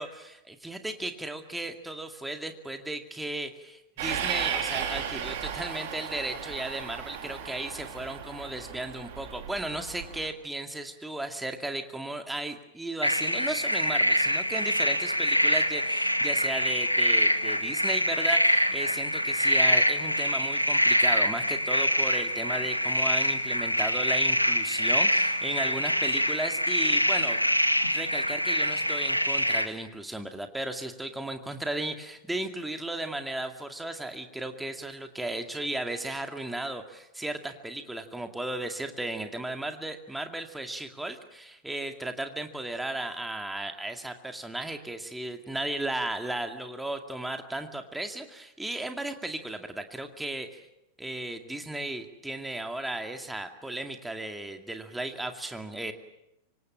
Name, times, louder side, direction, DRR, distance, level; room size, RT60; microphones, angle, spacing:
voice 1, 0.0-27.4 27.9-50.6 51.0-55.9, right 1 dB, 5° right, 6 dB, 2.3 m, -35 dB
Train, 4.0-10.3, right 8 dB, 55° right, 3.6 m, -35 dB
sound 1, 13.0-29.7, equal, 90° left, 1.5 m, -25 dB
26.0 x 25.5 x 7.5 m, 0.88 s
figure-of-eight pair, 90°, 0 cm